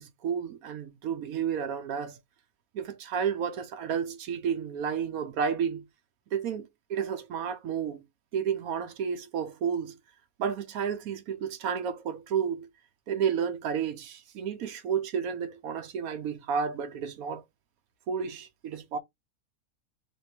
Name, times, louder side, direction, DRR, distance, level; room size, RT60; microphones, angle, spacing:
voice 1, 0.0-2.2 2.7-5.8 6.3-8.0 8.3-10.0 10.4-12.7 13.1-17.4 18.1-19.0, right 7 dB, 85° right, 1.2 m, -31 dB
3.5 x 3.1 x 4.2 m
omnidirectional pair, 1.5 m